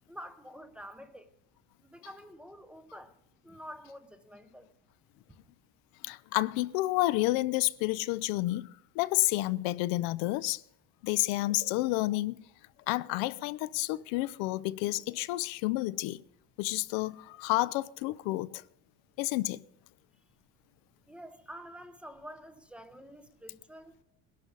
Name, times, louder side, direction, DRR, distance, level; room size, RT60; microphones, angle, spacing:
voice 1, 0.1-1.3 1.8-3.1 3.4-4.7 21.1-24.0, equal, 5° right, 0.6 m, -48 dB
voice 2, 6.0-10.6 11.0-12.4 12.9-16.2 16.6-18.6 19.2-19.6, left 19 dB, 85° left, 0.6 m, -30 dB
21.0 x 11.5 x 3.9 m
cardioid pair, 160°, 34 cm